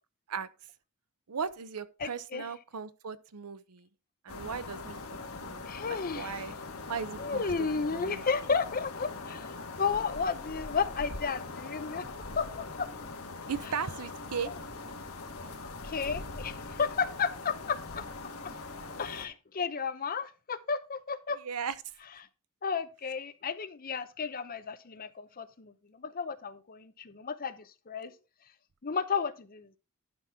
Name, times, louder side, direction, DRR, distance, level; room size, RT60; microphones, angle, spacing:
voice 1, 1.3-3.9 4.2-5.0 5.4-6.6 6.9-8.2 13.5-14.5 21.4-21.7, right 6 dB, 85° right, 0.7 m, -37 dB
voice 2, 2.0-2.5 5.7-6.5 7.2-12.9 15.8-18.0 19.0-21.4 22.6-28.2 28.8-29.8, left 5 dB, 40° left, 0.7 m, -33 dB
sound 1, 4.3-19.3, left 3 dB, 70° left, 1.5 m, -42 dB
sound 2, 12.8-13.5 14.0-15.5 15.9-17.5 17.9-19.4, right 3 dB, 20° left, 2.2 m, -55 dB
11.5 x 5.9 x 3.6 m
head